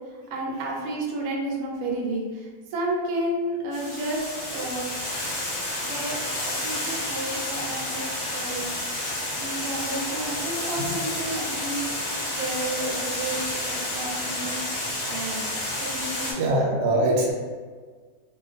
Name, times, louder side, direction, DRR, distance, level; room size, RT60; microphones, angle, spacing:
voice 1, 0.3-4.9 5.9-8.1 8.3-8.7 9.3-14.6 15.1-17.1, right 1 dB, 70° right, -2 dB, 0.9 m, -32 dB
Water, 3.7-16.3, left 1 dB, 50° left, 0.9 m, -30 dB
voice 2, 16.4-17.3, right 1 dB, 90° right, -1 dB, 1.2 m, -23 dB
2.4 x 2.4 x 2.4 m, 1.5 s
omnidirectional pair, 1.7 m